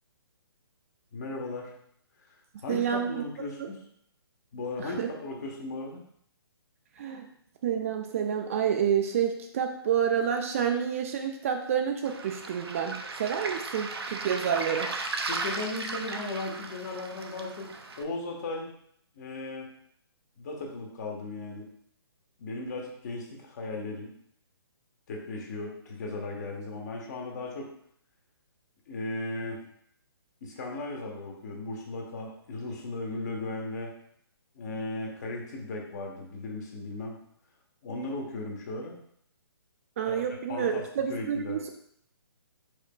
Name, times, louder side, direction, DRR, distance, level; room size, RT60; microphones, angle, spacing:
voice 1, 1.1-1.7 2.2-2.3 2.6-3.8 4.5-6.0 15.3-17.7 18.0-18.7 19.1-19.7 20.4-21.7 22.4-24.1 25.1-27.7 28.9-29.6 30.4-33.9 34.5-37.2 37.8-38.9 40.1-40.2 40.5-41.6, left 2 dB, 40° left, 0 dB, 1.1 m, -36 dB
voice 2, 2.7-3.2 3.6-3.7 4.8-5.1 7.0-7.3 7.6-14.9 40.0-41.7, right 8 dB, 35° right, 4 dB, 0.4 m, -29 dB
Waves surf, 12.0-18.0, right 3 dB, 70° right, 0.6 m, -36 dB
4.9 x 4.3 x 2.2 m, 0.68 s
figure-of-eight pair, 135°, 13 cm